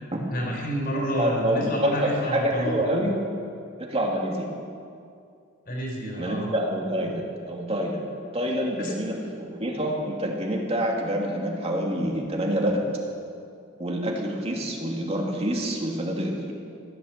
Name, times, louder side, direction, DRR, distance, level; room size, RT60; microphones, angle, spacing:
voice 1, 0.3-2.8 5.7-6.5 8.8-8.9, equal, 50° left, -1 dB, 4.2 m, -29 dB
voice 2, 1.2-3.2 3.8-4.5 6.2-8.1 8.3-12.9 13.8-16.5, equal, 30° right, 0 dB, 2.4 m, -27 dB
15.5 x 12.5 x 7.4 m, 2.4 s
head